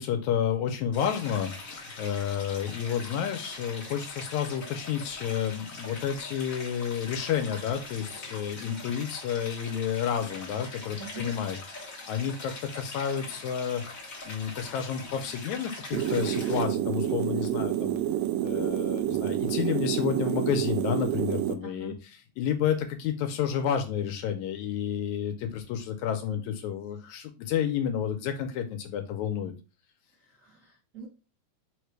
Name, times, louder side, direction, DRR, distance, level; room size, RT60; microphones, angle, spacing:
voice 1, 0.0-13.8 14.3-18.0 18.4-21.9 22.4-29.5, left 8 dB, 80° left, 6 dB, 1.9 m, -30 dB
Stream, 0.9-16.6, left 3 dB, 50° left, 0.9 m, -42 dB
voice 2, 11.0-11.3 21.6-22.0 30.2-31.1, right 5 dB, 45° right, -5 dB, 1.3 m, -44 dB
sound 1, 15.9-21.6, right 12 dB, 80° right, 1.8 m, -28 dB
4.9 x 2.2 x 4.5 m, 0.31 s
omnidirectional pair, 3.5 m